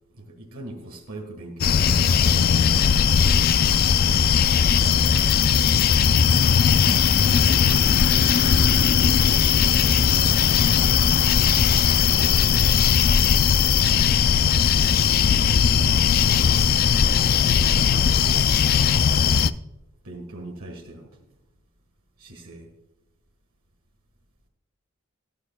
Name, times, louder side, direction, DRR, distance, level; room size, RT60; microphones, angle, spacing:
voice 1, 0.1-2.8 3.2-3.9 9.1-11.0 11.7-12.6 14.1-14.5 15.8-16.4 17.4-18.8 20.0-21.2 22.2-22.7, right 1 dB, 80° right, 1.5 m, -41 dB
sound 1, 1.6-19.5, left 7 dB, 45° left, 0.3 m, -18 dB
voice 2, 3.9-4.3 5.9-8.1, right 2 dB, 45° right, 2.1 m, -39 dB
14.0 x 12.0 x 2.2 m
head